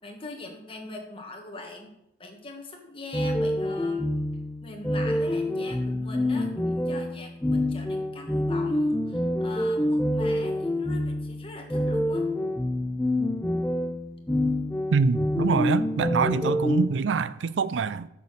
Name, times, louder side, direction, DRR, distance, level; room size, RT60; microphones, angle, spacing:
voice 1, 0.0-1.9 2.2-4.0 4.6-12.2, left 2 dB, 30° left, 1.6 m, -42 dB
sound 1, 3.1-16.9, left 1 dB, 10° left, 0.5 m, -27 dB
voice 2, 14.9-18.1, right 5 dB, 85° right, 0.4 m, -25 dB
7.0 x 6.7 x 6.3 m
head